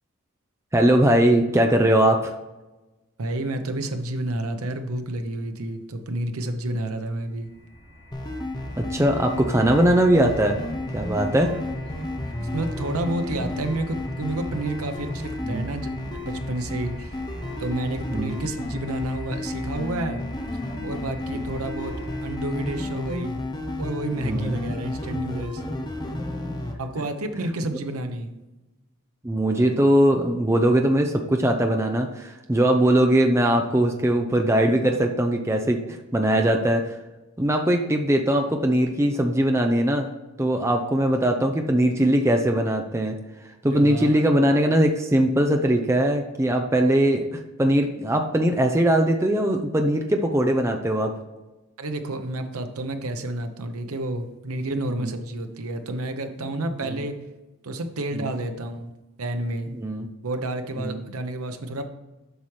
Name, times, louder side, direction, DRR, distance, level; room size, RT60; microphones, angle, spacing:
voice 1, 0.7-2.3 8.8-10.6 10.9-11.5 15.4-15.7 18.1-18.3 21.3-21.4 24.3-24.5 26.4-26.5 29.2-35.8 36.1-36.9 37.4-40.1 40.4-43.2 43.6-51.1 54.9-55.1 56.9-57.0 58.1-58.3 59.7-60.1 60.7-61.0, right 1 dB, 15° right, 3 dB, 0.5 m, -21 dB
voice 2, 3.2-7.5 11.9-12.1 12.4-17.2 17.6-20.3 20.8-22.0 22.2-23.4 23.8-25.6 26.8-28.3 43.7-44.3 51.8-57.2 57.6-58.9 59.2-59.7 60.2-61.8, right 1 dB, 90° right, 7 dB, 0.8 m, -30 dB
sound 1, 7.3-23.5, left 1 dB, 30° right, 1.8 m, -42 dB
sound 2, 8.1-26.7, left 1 dB, 20° left, 0.7 m, -32 dB
8.0 x 5.8 x 3.2 m, 1.1 s
head